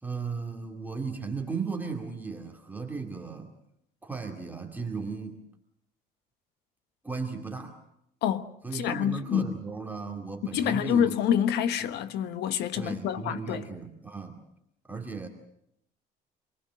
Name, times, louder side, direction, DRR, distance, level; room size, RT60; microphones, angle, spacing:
voice 1, 0.0-3.5 4.0-5.4 7.0-7.8 8.6-11.2 11.8-11.9 12.7-14.4 14.9-15.3, right 4 dB, 10° right, 2.4 m, -36 dB
voice 2, 8.7-9.6 10.5-13.6, left 9 dB, 80° left, 1.3 m, -27 dB
27.0 x 19.0 x 7.6 m
cardioid pair, 110°, 17 cm